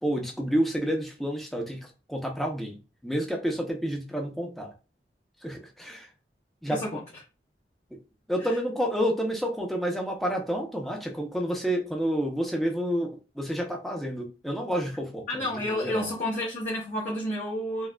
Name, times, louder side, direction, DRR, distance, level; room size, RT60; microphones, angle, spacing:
voice 1, 0.0-2.8 3.0-4.7 5.4-6.1 6.6-6.8 8.3-16.1, equal, ahead, 0.7 m, -29 dB
voice 2, 6.7-7.0 8.4-8.5 15.3-17.9, left 1 dB, 40° left, 0.8 m, -30 dB
4.6 x 2.3 x 2.2 m
head